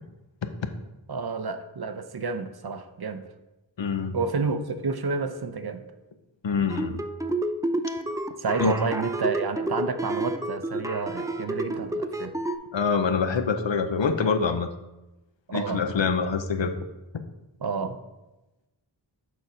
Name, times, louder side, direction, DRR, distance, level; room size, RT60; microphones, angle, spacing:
voice 1, 1.1-3.3 4.1-5.8 8.4-12.3 15.5-15.8 17.6-18.0, right 4 dB, 55° right, 9 dB, 0.6 m, -30 dB
voice 2, 3.8-4.2 6.4-7.0 8.6-8.7 12.7-14.7 15.5-16.8, left 5 dB, 70° left, 8 dB, 0.7 m, -25 dB
sound 1, 6.7-12.6, right 1 dB, 10° right, 0.4 m, -29 dB
6.7 x 4.3 x 5.0 m, 1.0 s
wide cardioid pair, 50°, 46 cm